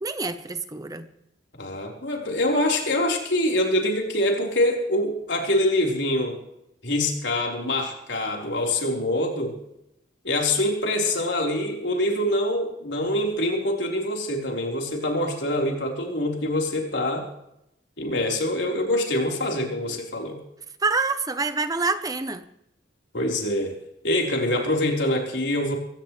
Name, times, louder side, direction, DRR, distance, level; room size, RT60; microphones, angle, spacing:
voice 1, 0.0-1.1 20.8-22.4, right 3 dB, 20° right, 11 dB, 0.9 m, -26 dB
voice 2, 1.5-6.4 6.8-9.6 10.2-17.3 18.0-20.4 23.1-23.8 24.0-25.8, left 1 dB, 75° left, 0 dB, 4.3 m, -25 dB
23.5 x 17.0 x 3.3 m, 0.83 s
head